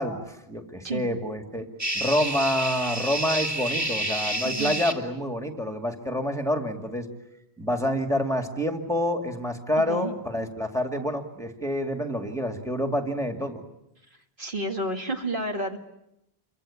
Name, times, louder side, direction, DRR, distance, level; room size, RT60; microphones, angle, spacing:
voice 1, 0.0-1.7 1.9-7.1 7.6-13.6, left 1 dB, 5° left, 4 dB, 2.3 m, -28 dB
sound 1, 1.8-4.9, right 1 dB, 15° right, 2.5 m, -29 dB
voice 2, 4.4-4.8 9.8-10.1 14.4-15.8, right 2 dB, 55° right, 3 dB, 2.4 m, -30 dB
28.5 x 24.5 x 8.6 m, 0.85 s
omnidirectional pair, 1.1 m